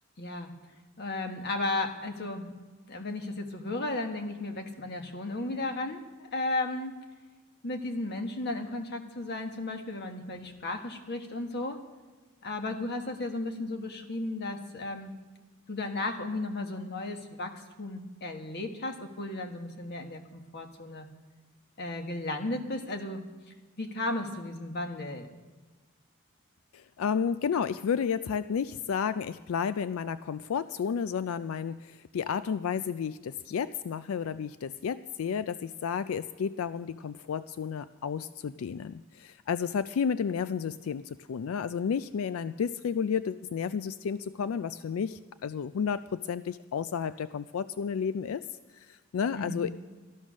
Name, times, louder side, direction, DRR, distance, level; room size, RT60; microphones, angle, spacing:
voice 1, 0.2-0.5 1.0-2.5 2.9-6.9 7.6-11.8 12.4-15.1 15.7-21.1 21.8-23.2 23.8-25.3 49.3-49.7, left 2 dB, 50° left, 5 dB, 1.4 m, -34 dB
voice 2, 26.7-48.4 48.8-49.7, left 7 dB, 70° left, 14 dB, 0.4 m, -32 dB
13.5 x 12.0 x 6.2 m, 1.3 s
head